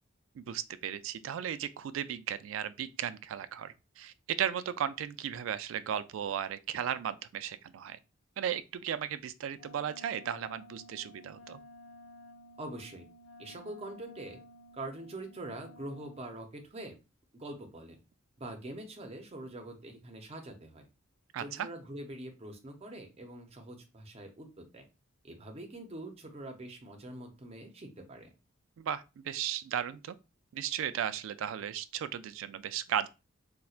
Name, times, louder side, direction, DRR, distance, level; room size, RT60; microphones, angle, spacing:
voice 1, 0.4-8.0 8.4-11.6 21.3-21.7 28.8-30.1 30.5-33.1, right 9 dB, 80° right, 0.3 m, -35 dB
Wind instrument woodwind instrument, 9.5-16.3, left 1 dB, 85° left, 0.8 m, -54 dB
voice 2, 12.6-13.0 13.4-14.4 14.7-17.0 17.3-18.0 18.4-20.9 21.4-24.8 25.2-28.3, right 1 dB, 30° right, 0.6 m, -44 dB
4.2 x 2.2 x 2.4 m
head